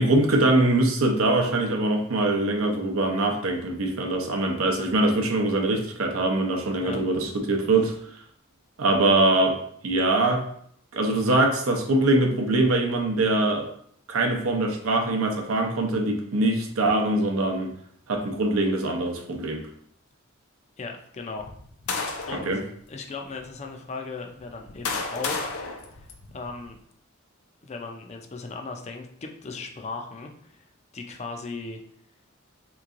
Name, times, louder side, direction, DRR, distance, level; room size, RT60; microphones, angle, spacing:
voice 1, 0.0-7.9 8.8-10.5 10.9-13.7 14.1-17.7 18.1-19.6 22.5-22.6, right 2 dB, 70° right, 2 dB, 0.7 m, -23 dB
voice 2, 20.8-21.5 22.3-22.6 22.9-25.6 25.9-26.8 27.6-30.6 30.9-31.8, left 3 dB, 30° left, 3 dB, 0.4 m, -37 dB
sound 1, 21.4-22.5 23.3-23.4 24.3-26.7, left 4 dB, 80° left, 0.5 m, -32 dB
3.7 x 3.0 x 2.5 m, 0.65 s
head